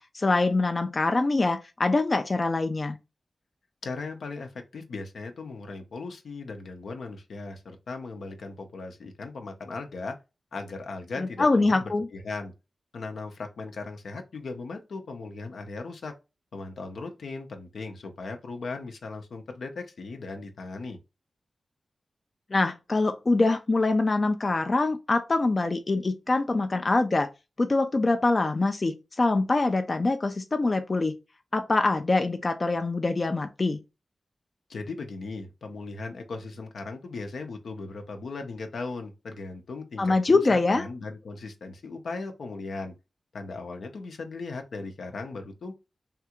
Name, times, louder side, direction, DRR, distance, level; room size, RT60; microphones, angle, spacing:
voice 1, 0.1-3.0 11.2-12.1 22.5-27.3 27.6-31.1 31.5-33.8 40.0-40.8, left 3 dB, 50° left, 0.4 m, -24 dB
voice 2, 3.8-10.1 10.5-12.5 12.9-16.1 16.5-21.0 34.7-42.9 43.3-45.7, left 3 dB, 85° left, 0.7 m, -38 dB
3.3 x 2.4 x 2.9 m
cardioid pair, 45°, 0 cm